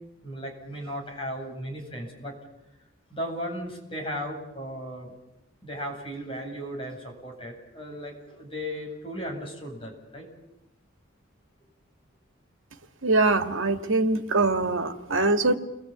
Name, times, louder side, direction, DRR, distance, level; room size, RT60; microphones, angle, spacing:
voice 1, 0.2-2.3 3.1-5.1 5.6-10.3, equal, 25° left, 0 dB, 8.0 m, -36 dB
voice 2, 13.0-15.6, right 2 dB, 75° right, 7 dB, 2.1 m, -23 dB
30.0 x 22.0 x 8.8 m, 0.90 s
head